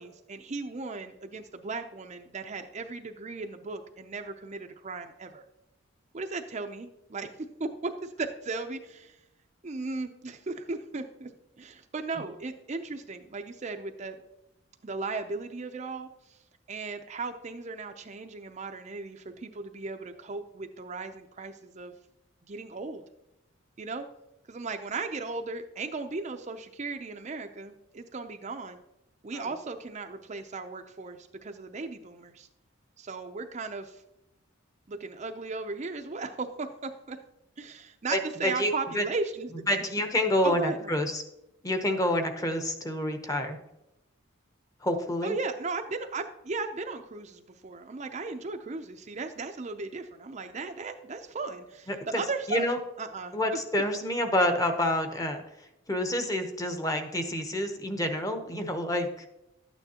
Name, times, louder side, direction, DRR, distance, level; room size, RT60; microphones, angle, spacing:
voice 1, 0.0-5.4 6.1-9.2 9.6-11.3 11.6-14.2 14.8-16.4 16.7-21.9 22.5-23.0 23.8-24.1 24.5-28.8 29.2-32.5 33.0-34.0 34.9-37.2 37.6-39.9 40.4-40.9 45.2-52.7 53.0-53.4, right 3 dB, 35° right, 6 dB, 0.5 m, -36 dB
voice 2, 38.1-39.0 39.7-41.2 41.6-43.6 44.8-45.4 51.9-52.2 52.5-52.8 53.3-55.4 55.9-59.3, left 1 dB, 15° left, 6 dB, 0.8 m, -28 dB
12.0 x 9.1 x 2.9 m, 0.88 s
head